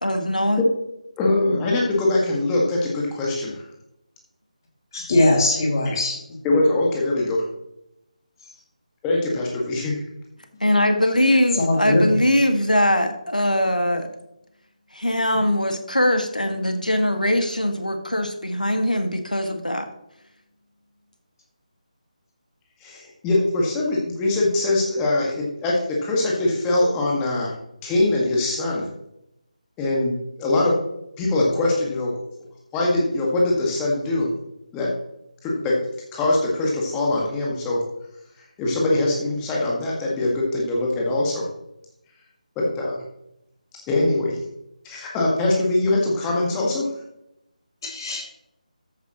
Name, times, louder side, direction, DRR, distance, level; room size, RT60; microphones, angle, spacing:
voice 1, 0.0-0.6 10.6-14.1 14.9-19.9, left 1 dB, 80° left, 6 dB, 1.7 m, -21 dB
voice 2, 1.2-3.7 6.4-7.4 9.0-10.0 22.8-27.5 27.8-28.8 29.8-30.8 31.2-32.1 32.7-34.3 34.7-34.9 35.4-35.8 36.1-37.8 38.6-41.5 42.6-43.0 43.9-44.4 44.8-46.9, left 2 dB, 10° left, -3 dB, 1.8 m, -22 dB
voice 3, 4.9-6.2 11.5-12.2 47.8-48.2, left 2 dB, 30° left, 0 dB, 2.5 m, -20 dB
13.5 x 7.9 x 3.0 m, 0.84 s
figure-of-eight pair, 155°, 4 cm